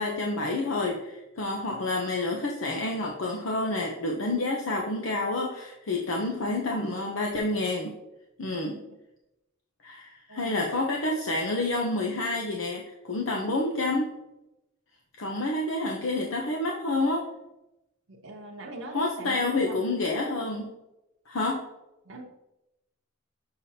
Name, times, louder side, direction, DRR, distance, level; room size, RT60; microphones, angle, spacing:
voice 1, 0.0-7.9 8.4-8.8 9.8-14.1 15.2-17.3 18.9-20.7 21.3-21.6, left 2 dB, 80° left, 0 dB, 0.8 m, -29 dB
voice 2, 10.3-10.7 18.1-19.8 22.0-22.2, right 2 dB, 75° right, -2 dB, 0.9 m, -41 dB
6.8 x 5.7 x 2.8 m, 0.91 s
head